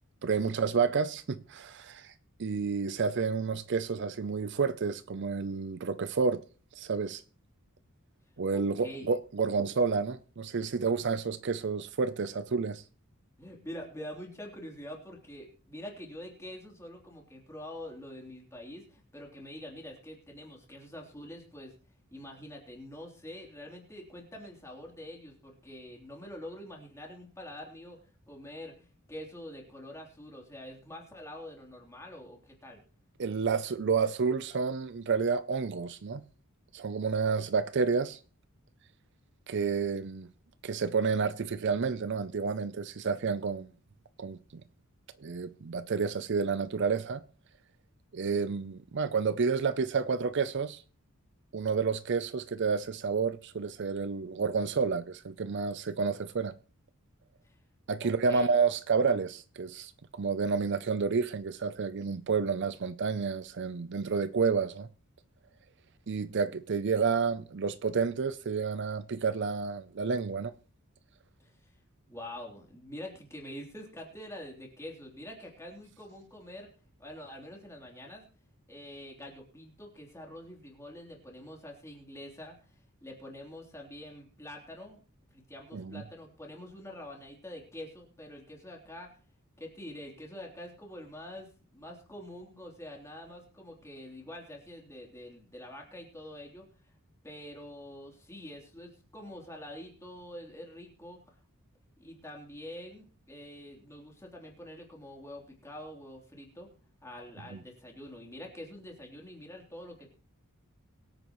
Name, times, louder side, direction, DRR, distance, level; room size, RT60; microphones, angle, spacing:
voice 1, 0.2-2.1 2.4-6.4 6.8-7.2 8.4-12.8 33.2-36.2 36.7-38.2 39.5-40.3 40.6-43.7 44.2-44.6 45.2-47.2 48.1-50.8 51.5-56.5 57.9-64.9 66.1-70.5 85.7-86.0 107.5-107.6, right 5 dB, 55° right, 0.5 m, -30 dB
voice 2, 8.5-9.1 13.4-21.7 22.1-32.8 57.4-57.5 58.0-58.5 71.4-71.5 72.1-76.7 77.0-78.2 78.7-82.6 83.0-85.0 85.3-89.2 89.6-96.6 97.2-101.2 102.0-106.7 107.0-110.1, left 1 dB, 15° left, 3.3 m, -46 dB
22.5 x 8.9 x 3.1 m
head